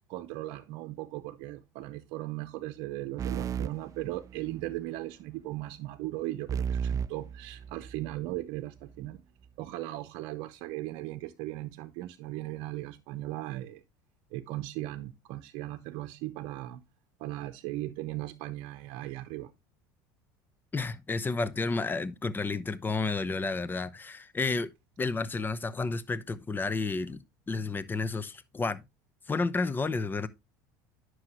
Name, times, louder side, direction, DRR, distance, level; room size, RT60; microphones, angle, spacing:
voice 1, 0.1-9.2 9.6-13.8 14.3-16.8 17.2-19.5, right 16 dB, 65° right, 0.8 m, -38 dB
sound 1, 3.2-4.8 6.5-8.2, right 7 dB, 35° right, 0.4 m, -34 dB
voice 2, 20.7-24.7 25.0-28.8 29.3-30.3, left 3 dB, 20° left, 0.8 m, -31 dB
9.7 x 6.2 x 3.0 m
hypercardioid pair, 90°, 10 cm